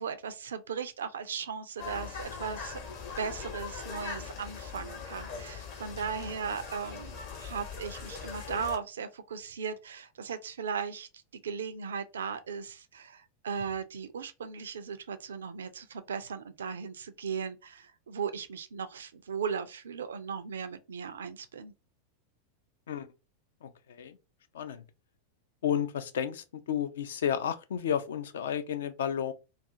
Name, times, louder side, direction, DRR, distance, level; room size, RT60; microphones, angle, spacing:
voice 1, 0.0-2.8 3.2-21.7, right 6 dB, 65° right, 0.3 m, -37 dB
sound 1, 1.8-8.8, left 6 dB, 45° left, 0.9 m, -41 dB
voice 2, 23.6-24.2 24.5-24.8 25.6-29.3, left 9 dB, 60° left, 0.4 m, -32 dB
2.4 x 2.3 x 2.6 m
figure-of-eight pair, 90°, 0 cm